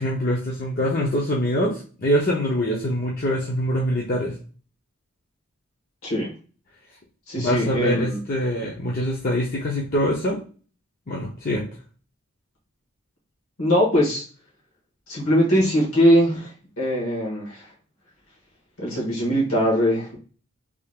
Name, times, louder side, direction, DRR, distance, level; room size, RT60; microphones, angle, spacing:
voice 1, 0.0-4.3 7.4-10.4 11.1-11.6, equal, 40° left, -3 dB, 0.7 m, -24 dB
voice 2, 7.3-8.2 13.6-14.2 15.1-16.5 16.8-17.6 18.8-20.2, equal, 70° left, -3 dB, 1.7 m, -21 dB
3.5 x 2.5 x 3.5 m, 0.38 s
head